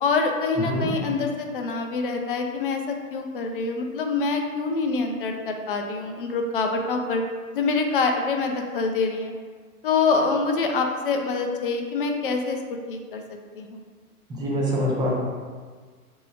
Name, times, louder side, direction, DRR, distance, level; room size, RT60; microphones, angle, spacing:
voice 1, 0.0-7.2 7.5-9.3 9.8-12.6 12.9-13.2 13.6-13.8, left 4 dB, 40° left, 4 dB, 0.5 m, -25 dB
voice 2, 14.3-15.1, equal, 10° right, -5 dB, 0.7 m, -25 dB
6.7 x 3.0 x 2.4 m, 1.5 s
figure-of-eight pair, 110°, 45 cm